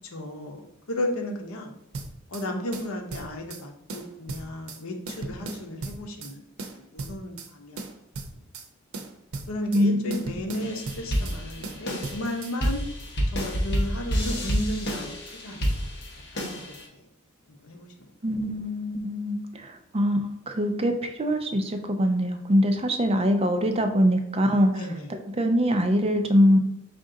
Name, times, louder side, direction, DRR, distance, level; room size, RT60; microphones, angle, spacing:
voice 1, 0.1-1.8 2.3-6.4 6.7-7.8 9.5-12.8 13.3-15.1 15.4-15.9 16.3-17.0 17.5-18.1 24.7-25.1, left 1 dB, 80° left, 3 dB, 0.9 m, -34 dB
sound 1, 1.9-2.5 2.7-3.6 3.9-4.8 5.1-6.3 6.6-7.5 7.8-8.7 8.9-9.8 10.1-11.4 11.6-12.5, right 3 dB, 85° right, 0.6 m, -37 dB
voice 2, 9.7-10.2 10.6-10.7 18.2-20.2 20.5-24.7 25.1-26.6, equal, 30° right, 5 dB, 0.5 m, -23 dB
sound 2, 10.6-16.8, equal, 55° left, 1.1 m, -29 dB
5.1 x 2.5 x 3.8 m, 0.82 s
head